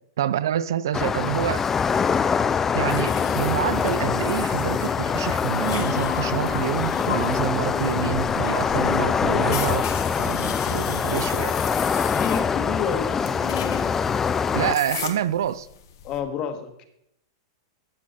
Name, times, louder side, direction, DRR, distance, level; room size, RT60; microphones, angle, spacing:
voice 1, 0.2-1.6 2.7-9.9 10.2-11.5 14.5-15.7, right 10 dB, 80° right, 0.6 m, -27 dB
sound 1, 0.9-14.7, left 6 dB, 15° left, 0.4 m, -24 dB
sound 2, 2.9-16.2, left 9 dB, 75° left, 1.6 m, -35 dB
voice 2, 12.1-13.4 16.0-16.8, left 7 dB, 30° left, 1.6 m, -30 dB
14.0 x 8.6 x 4.3 m
supercardioid pair, 155°, 2 cm